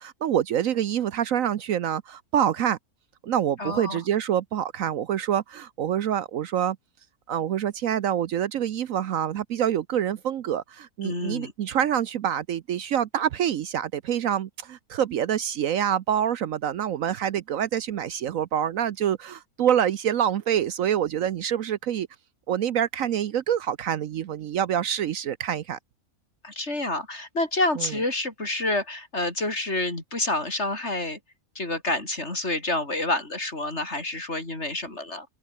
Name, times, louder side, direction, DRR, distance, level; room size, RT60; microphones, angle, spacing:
voice 1, 0.0-2.8 3.2-6.8 7.3-22.1 22.5-25.8 27.8-27.9, right 9 dB, 65° right, 1.1 m, -26 dB
voice 2, 3.6-4.0 11.0-11.5 26.4-31.2 31.6-35.3, left 2 dB, 45° left, 5.4 m, -28 dB
open air
omnidirectional pair, 1.6 m